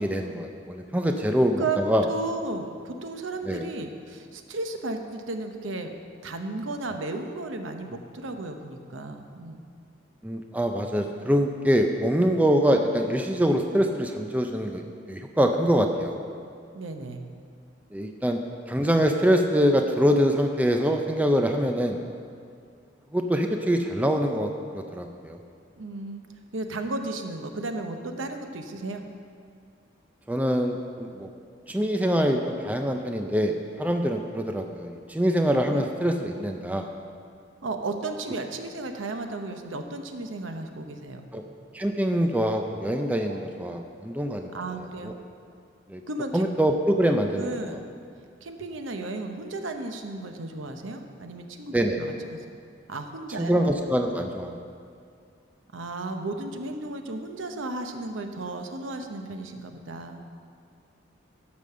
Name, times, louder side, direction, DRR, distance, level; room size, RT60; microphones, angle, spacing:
voice 1, 0.0-2.1 3.5-3.6 10.2-14.8 15.1-16.2 17.9-18.4 18.7-22.0 23.1-25.4 30.3-31.3 31.7-36.9 41.3-41.4 41.7-44.5 45.0-45.1 45.9-46.0 46.3-47.5 51.7-52.0 53.4-54.6, equal, 10° right, 4 dB, 0.4 m, -24 dB
voice 2, 2.1-5.9 6.2-9.6 16.7-17.2 25.8-26.2 26.5-29.0 35.7-35.8 37.6-41.2 43.3-43.4 44.5-45.2 46.1-46.5 47.4-47.8 48.4-52.4 52.9-53.6 55.7-60.2, right 2 dB, 90° right, 5 dB, 0.8 m, -34 dB
11.5 x 5.3 x 6.7 m, 2.3 s
head